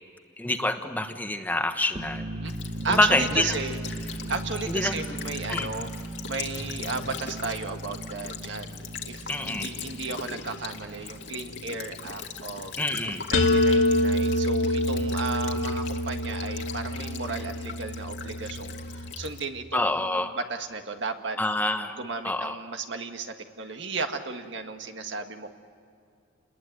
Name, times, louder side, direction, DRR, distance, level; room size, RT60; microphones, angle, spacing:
voice 1, 0.4-2.4 2.9-3.5 4.7-5.0 5.5-5.7 9.3-9.7 12.8-13.2 19.7-20.3 21.4-22.0 22.2-22.6, left 1 dB, 10° left, 7 dB, 1.2 m, -26 dB
sound 1, 1.8-13.4, right 1 dB, 35° right, 1.3 m, -38 dB
Child speech kid speaking / Bird vocalization bird call bird song / Stream, 2.4-19.4, left 6 dB, 65° left, 2.1 m, -40 dB
voice 2, 2.8-12.7 13.3-21.4 22.0-25.5, right 4 dB, 65° right, 5 dB, 1.8 m, -34 dB
sound 2, 13.3-19.1, left 1 dB, 85° left, 2.2 m, -26 dB
29.0 x 20.5 x 9.5 m, 2.4 s
head